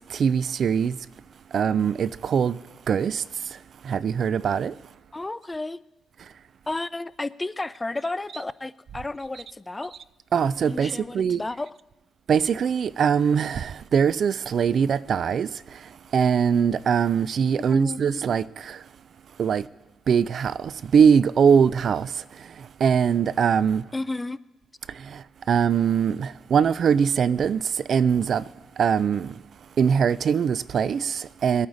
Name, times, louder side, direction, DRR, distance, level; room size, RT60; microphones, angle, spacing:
voice 1, 0.1-0.9 1.5-2.6 2.9-3.2 3.9-4.7 10.3-11.4 12.3-15.5 16.1-18.8 19.4-19.6 20.1-22.1 22.8-23.8 25.5-27.6 27.9-28.4 28.8-29.3 29.8-31.7, right 7 dB, 55° right, 0.4 m, -22 dB
voice 2, 5.1-5.8 6.7-10.0 10.6-11.7 17.7-18.2 23.9-24.4, left 2 dB, 15° left, 0.4 m, -32 dB
21.0 x 8.7 x 4.0 m
cardioid pair, 90°, 0 cm